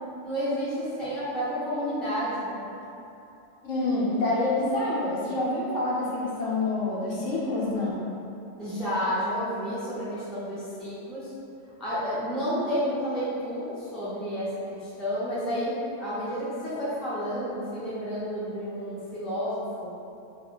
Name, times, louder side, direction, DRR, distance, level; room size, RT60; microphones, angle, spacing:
voice 1, 0.2-2.7 8.6-11.3 11.8-19.9, equal, ahead, -11 dB, 0.5 m, -30 dB
voice 2, 3.6-8.0, left 2 dB, 80° left, -5 dB, 1.0 m, -27 dB
2.4 x 2.3 x 3.7 m, 2.8 s
omnidirectional pair, 1.3 m